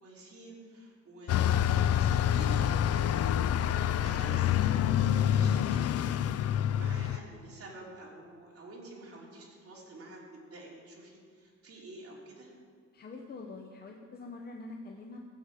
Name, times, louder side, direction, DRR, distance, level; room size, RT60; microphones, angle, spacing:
voice 1, 0.0-12.5, right 2 dB, 50° right, -3 dB, 3.0 m, -49 dB
Bus, 1.3-7.2, left 10 dB, 55° left, 0.4 m, -27 dB
voice 2, 12.9-15.2, left 3 dB, 30° left, 1 dB, 0.8 m, -45 dB
14.5 x 8.2 x 4.9 m, 2.1 s
cardioid pair, 140°, 30 cm